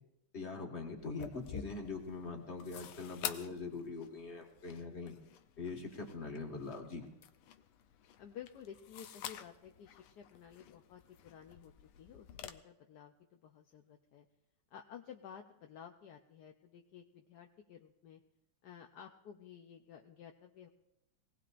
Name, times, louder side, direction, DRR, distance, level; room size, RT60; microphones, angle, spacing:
voice 1, 0.3-5.2 5.6-7.0, left 3 dB, 30° left, 1 dB, 1.9 m, -43 dB
sound 1, 1.0-12.5, left 10 dB, 85° left, 1.6 m, -49 dB
voice 2, 8.2-11.7 12.0-14.3 14.7-18.2 18.6-20.7, left 8 dB, 65° left, 4 dB, 1.0 m, -53 dB
23.0 x 17.5 x 2.5 m, 0.88 s
omnidirectional pair, 2.3 m